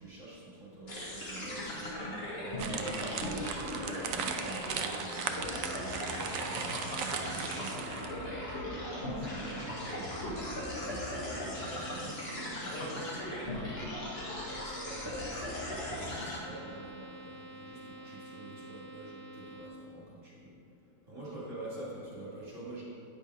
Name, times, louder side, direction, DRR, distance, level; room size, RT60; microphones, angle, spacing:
voice 1, 0.0-7.9 8.6-12.5 14.6-20.6 21.0-22.8, right 2 dB, 45° right, -7 dB, 2.6 m, -46 dB
sound 1, 0.9-16.4, left 1 dB, 35° left, 1.8 m, -38 dB
sound 2, 2.6-8.3, right 7 dB, 70° right, 0.8 m, -38 dB
sound 3, 5.4-19.7, right 1 dB, 20° right, 1.5 m, -49 dB
voice 2, 12.6-14.7 21.1-22.0, left 1 dB, 85° left, -1 dB, 1.9 m, -47 dB
9.3 x 5.3 x 4.7 m, 3.0 s
omnidirectional pair, 1.9 m